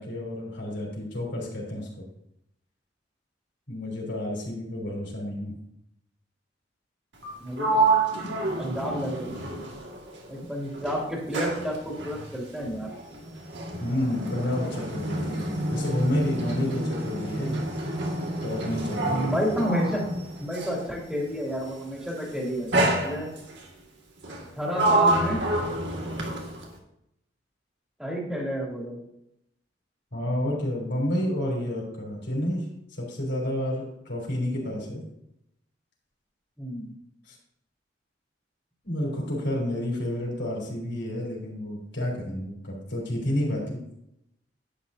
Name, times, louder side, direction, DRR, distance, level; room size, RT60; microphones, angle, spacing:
voice 1, 0.0-2.0 3.7-5.5 13.8-17.6 18.2-19.3 30.1-32.7 33.0-35.0 37.3-37.4 38.8-43.8, left 1 dB, 65° left, -2 dB, 4.0 m, -30 dB
Sliding door, 7.1-10.4 10.7-20.9 21.8-22.1 22.7-23.6 24.2-26.8, right 2 dB, 70° right, 2.2 m, -28 dB
voice 2, 7.4-7.8 8.6-9.6 10.3-12.9 19.0-20.0 20.4-22.8 23.0-23.3 24.6-25.4 28.0-29.0 36.6-36.9, equal, 5° right, -3 dB, 2.9 m, -30 dB
11.5 x 9.7 x 2.8 m, 0.78 s
head